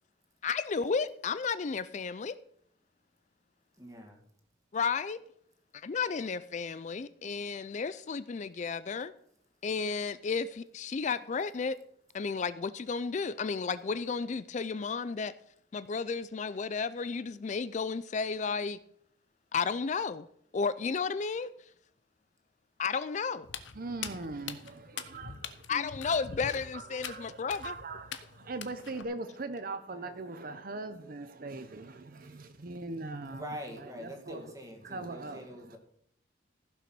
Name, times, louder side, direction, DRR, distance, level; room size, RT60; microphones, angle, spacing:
voice 1, 0.4-2.4 4.7-5.2 5.7-9.1 9.6-11.8 12.1-15.3 15.7-18.8 19.5-20.3 20.5-21.5 22.8-23.5 25.7-27.7, left 5 dB, 40° left, 0.4 m, -33 dB
voice 2, 3.8-4.2 29.9-30.1 33.3-35.8, equal, 20° right, 2.0 m, -44 dB
Walk footsteps, 23.4-29.0, left 7 dB, 80° left, 0.9 m, -44 dB
voice 3, 23.7-25.6 26.0-26.2 26.7-33.4 33.8-34.4 34.8-35.8, right 3 dB, 50° right, 0.7 m, -41 dB
15.5 x 5.9 x 6.1 m
head